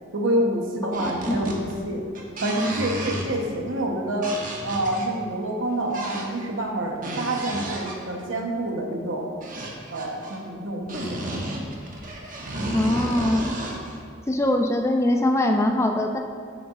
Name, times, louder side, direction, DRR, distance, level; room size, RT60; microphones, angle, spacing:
voice 1, 0.1-2.1 2.4-4.3 4.6-9.3 9.9-11.2, right 1 dB, 90° right, 1 dB, 1.0 m, -27 dB
sound 1, 0.9-1.7 2.0-3.5 4.2-5.0 5.9-6.4 6.9-8.1 9.4-10.4 10.9-14.0, right 1 dB, 45° right, 1.0 m, -32 dB
voice 2, 12.7-13.5 14.3-16.2, left 1 dB, 15° left, 4 dB, 0.4 m, -22 dB
9.5 x 6.9 x 2.5 m, 2.1 s
head